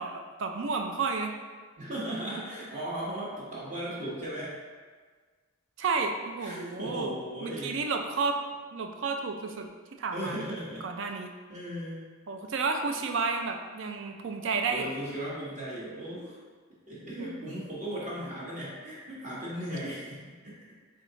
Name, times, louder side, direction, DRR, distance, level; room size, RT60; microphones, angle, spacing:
voice 1, 0.0-1.3 2.3-2.4 5.8-7.2 7.4-8.4 8.7-9.7 10.0-10.4 10.8-11.3 12.3-14.9 17.2-17.3, right 4 dB, 60° right, 4 dB, 0.4 m, -31 dB
voice 2, 1.8-4.5 6.4-7.8 10.1-10.8 11.5-12.1 14.7-16.4 16.9-20.6, right 1 dB, 35° right, -7 dB, 1.0 m, -37 dB
3.7 x 3.5 x 3.9 m, 1.5 s
head